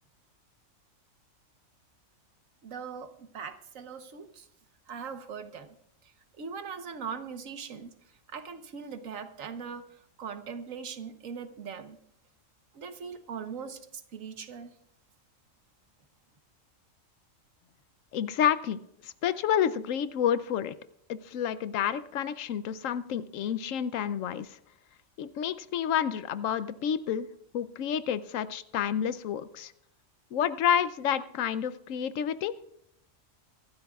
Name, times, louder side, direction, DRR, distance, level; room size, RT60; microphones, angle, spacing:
voice 1, 2.6-4.5 4.9-5.7 6.4-7.9 8.3-9.9 10.2-12.0 12.7-14.7, right 6 dB, 80° right, 9 dB, 1.4 m, -40 dB
voice 2, 18.1-20.7 21.1-24.6 25.2-27.3 27.5-29.7 30.3-32.5, left 9 dB, 75° left, 15 dB, 1.0 m, -29 dB
24.0 x 12.5 x 2.4 m, 0.74 s
omnidirectional pair, 1.4 m